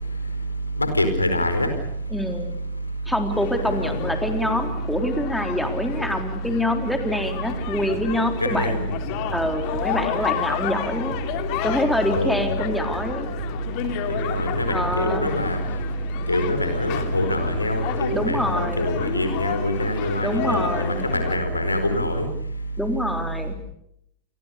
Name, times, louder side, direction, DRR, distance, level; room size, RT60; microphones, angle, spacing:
voice 1, 0.8-1.7 3.6-4.1 8.4-9.0 12.1-12.5 14.1-15.6 16.3-22.3, left 1 dB, 85° left, 7 dB, 4.7 m, -24 dB
voice 2, 2.1-2.6 3.1-8.9 9.3-11.1 11.6-13.3 14.7-15.3 18.1-18.9 20.2-21.0 22.8-23.5, left 1 dB, ahead, 5 dB, 3.8 m, -26 dB
sound 1, 3.3-21.4, left 10 dB, 45° left, 3.1 m, -32 dB
sound 2, 7.5-14.7, right 6 dB, 35° right, 6.1 m, -42 dB
29.0 x 23.5 x 6.7 m, 0.76 s
figure-of-eight pair, 90°, 0 cm